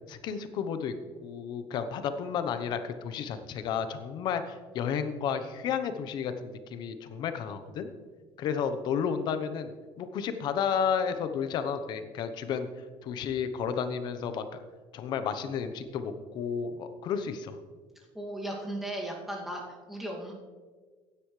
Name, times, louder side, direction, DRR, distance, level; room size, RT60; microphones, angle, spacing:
voice 1, 0.1-0.9 1.2-7.9 8.4-12.7 13.0-14.4 14.9-17.6, left 7 dB, 50° left, 9 dB, 0.9 m, -32 dB
voice 2, 18.1-19.6 19.9-20.3, right 1 dB, 5° right, -3 dB, 2.3 m, -36 dB
15.5 x 10.0 x 3.3 m, 1.5 s
cardioid pair, 150°, 9 cm